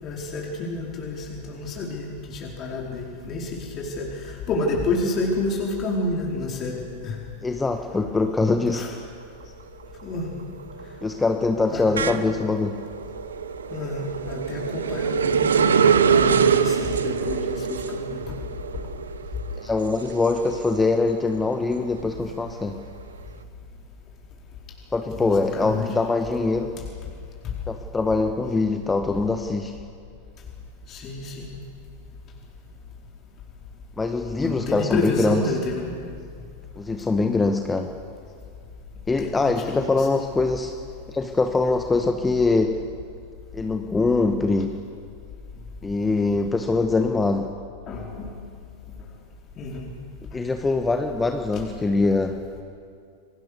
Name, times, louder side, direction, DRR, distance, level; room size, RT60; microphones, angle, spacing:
voice 1, 0.0-7.2 8.7-8.9 10.0-10.4 11.7-12.2 13.7-18.2 25.1-25.9 30.9-31.5 34.4-35.9 39.2-40.2 47.9-48.3 49.6-49.9, left 2 dB, 30° left, -2 dB, 4.4 m, -29 dB
voice 2, 7.4-8.9 11.0-12.8 19.6-22.8 24.9-26.7 27.7-29.7 34.0-35.4 36.8-37.9 39.1-40.7 41.1-42.8 43.5-44.7 45.8-47.5 50.3-52.4, left 3 dB, 10° left, 5 dB, 1.4 m, -23 dB
sound 1, 9.0-9.5 9.8-21.1 21.5-23.2, right 6 dB, 70° right, 1.0 m, -24 dB
29.5 x 22.5 x 6.9 m, 2.4 s
figure-of-eight pair, 90°, 0 cm